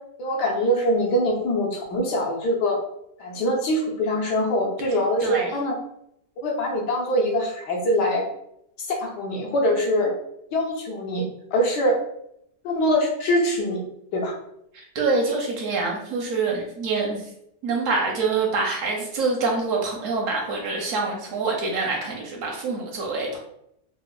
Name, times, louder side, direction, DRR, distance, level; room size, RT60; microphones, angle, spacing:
voice 1, 0.2-2.8 3.2-5.8 6.4-8.3 8.9-10.1 10.5-11.3 11.5-12.0 12.6-13.8 14.1-14.3, equal, 70° left, -1 dB, 1.4 m, -23 dB
voice 2, 4.9-5.5 14.7-17.3 17.6-23.4, right 3 dB, 70° right, 0 dB, 0.8 m, -26 dB
4.6 x 2.0 x 2.3 m, 0.76 s
omnidirectional pair, 1.9 m